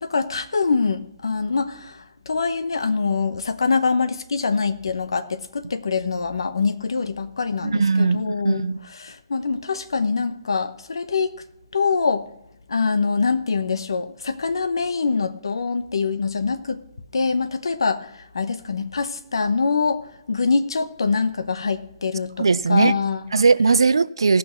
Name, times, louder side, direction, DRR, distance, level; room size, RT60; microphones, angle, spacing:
voice 1, 0.0-8.7 9.0-11.3 11.7-12.3 12.7-16.8 17.1-18.1 18.3-23.2, left 4 dB, 85° left, 0.9 m, -24 dB
voice 2, 7.6-8.2 8.4-8.8 22.4-22.9 23.3-24.4, right 4 dB, 90° right, 0.4 m, -18 dB
17.5 x 6.1 x 4.4 m
hypercardioid pair, 145°, 2 cm